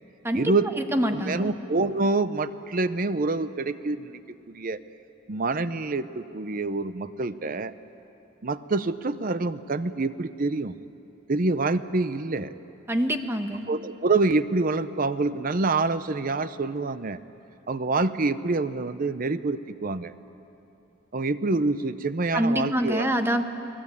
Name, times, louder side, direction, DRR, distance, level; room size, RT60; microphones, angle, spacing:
voice 1, 0.3-0.7 1.1-4.2 4.5-4.8 5.3-7.7 8.4-10.7 11.3-12.5 13.7-17.2 17.7-20.1 21.1-23.1, right 3 dB, 45° right, 13 dB, 0.7 m, -26 dB
voice 2, 0.9-1.5 12.9-13.7 22.3-23.4, equal, 10° right, 6 dB, 1.2 m, -25 dB
30.0 x 19.5 x 8.4 m, 2.9 s
head